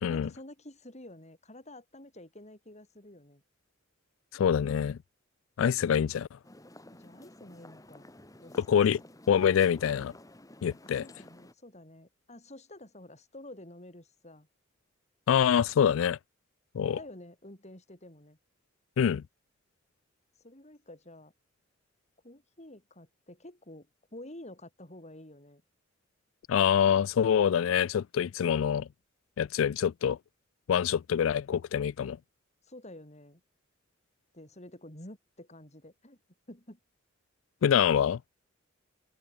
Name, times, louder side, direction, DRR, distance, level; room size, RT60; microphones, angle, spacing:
voice 1, 0.1-3.4 6.9-8.1 8.4-8.6 10.8-14.5 16.9-18.4 20.4-21.3 22.2-25.6 32.6-33.4 34.3-36.2 36.5-36.8, left 1 dB, 35° left, 6.1 m, -49 dB
voice 2, 4.3-5.0 5.6-6.4 8.7-9.0 9.3-10.1 10.6-11.0 15.3-16.2 16.7-17.0 19.0-19.2 26.5-28.9 29.4-30.2 30.7-32.2 37.6-38.4, left 8 dB, 90° left, 0.3 m, -25 dB
sound 1, 6.4-11.5, left 1 dB, 20° left, 2.3 m, -52 dB
open air
head